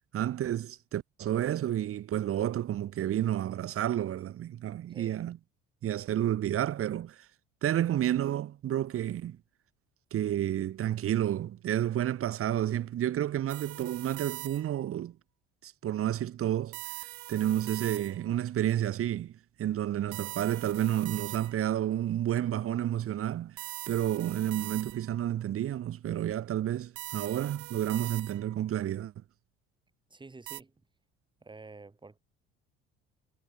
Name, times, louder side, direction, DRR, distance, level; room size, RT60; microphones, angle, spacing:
voice 1, 0.1-5.4 5.8-7.2 7.6-9.4 10.1-15.2 15.6-16.8 17.3-23.6 23.9-29.1, right 11 dB, 50° right, 1.2 m, -30 dB
voice 2, 4.9-5.2 30.1-30.7 31.4-32.2, right 3 dB, 15° right, 2.0 m, -49 dB
sound 1, 13.5-14.9 16.7-18.4 20.1-21.8 23.6-25.2 27.0-28.6 30.5-30.6, right 21 dB, 70° right, 2.4 m, -42 dB
hypercardioid pair, 70°, 29 cm